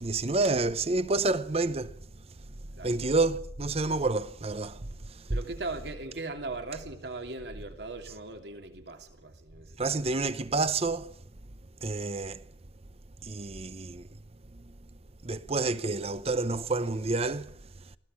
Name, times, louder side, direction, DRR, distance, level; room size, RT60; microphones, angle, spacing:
voice 1, 0.0-2.0 2.8-5.4 9.8-11.1 11.8-12.4 13.2-14.1 14.5-14.7 15.2-17.6, right 3 dB, 35° right, 0.8 m, -29 dB
voice 2, 5.3-10.0, right 3 dB, 70° right, 2.8 m, -39 dB
21.0 x 15.5 x 8.7 m
head